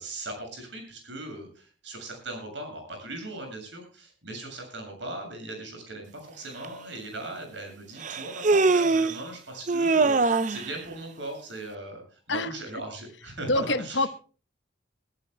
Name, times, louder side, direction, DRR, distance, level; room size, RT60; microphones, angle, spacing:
voice 1, 0.0-14.1, right 2 dB, 75° right, 4 dB, 7.4 m, -39 dB
Human voice, 6.6-6.7 8.0-9.2 9.7-10.7, right 3 dB, 40° right, 0.6 m, -22 dB
voice 2, 13.5-14.1, left 2 dB, 70° left, 12 dB, 1.1 m, -26 dB
23.0 x 14.5 x 2.2 m, 0.38 s
head